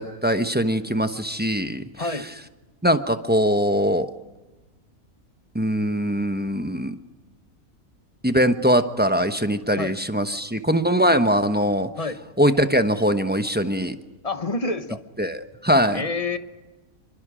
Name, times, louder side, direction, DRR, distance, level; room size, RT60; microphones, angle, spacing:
voice 1, 0.0-1.8 2.8-4.1 5.5-7.0 8.2-11.9 12.4-14.0 15.2-16.0, equal, 10° right, 8 dB, 0.8 m, -21 dB
voice 2, 2.0-2.3 9.8-9.9 12.0-12.2 14.2-15.0 15.9-16.4, left 3 dB, 30° left, 10 dB, 1.1 m, -27 dB
27.0 x 23.5 x 5.1 m, 1.2 s
omnidirectional pair, 1.5 m